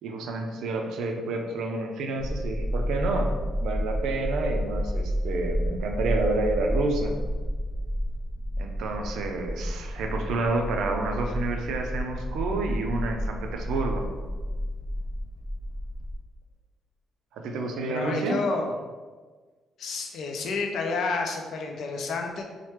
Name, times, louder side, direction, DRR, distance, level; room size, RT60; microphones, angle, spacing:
voice 1, 0.0-3.3 3.6-7.1 8.6-14.1 17.3-18.4, right 2 dB, 80° right, 3 dB, 0.4 m, -29 dB
sound 1, 2.2-16.2, equal, ahead, 0.4 m, -30 dB
voice 2, 17.9-18.7 19.8-22.4, left 4 dB, 70° left, 2 dB, 0.4 m, -30 dB
3.2 x 2.1 x 2.9 m, 1.4 s
cardioid pair, 90°, 0 cm